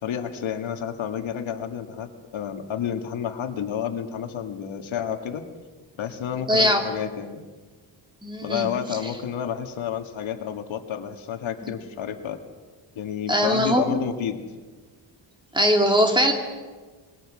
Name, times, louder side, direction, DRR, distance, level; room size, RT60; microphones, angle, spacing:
voice 1, 0.0-5.5 6.0-7.5 8.4-12.4 13.0-14.4, left 8 dB, 85° left, 6 dB, 2.1 m, -30 dB
voice 2, 6.5-6.8 8.2-8.7 11.6-11.7 13.3-14.0 15.5-16.3, equal, 10° right, 3 dB, 2.9 m, -21 dB
27.0 x 21.5 x 6.3 m, 1.4 s
wide cardioid pair, 140°, 46 cm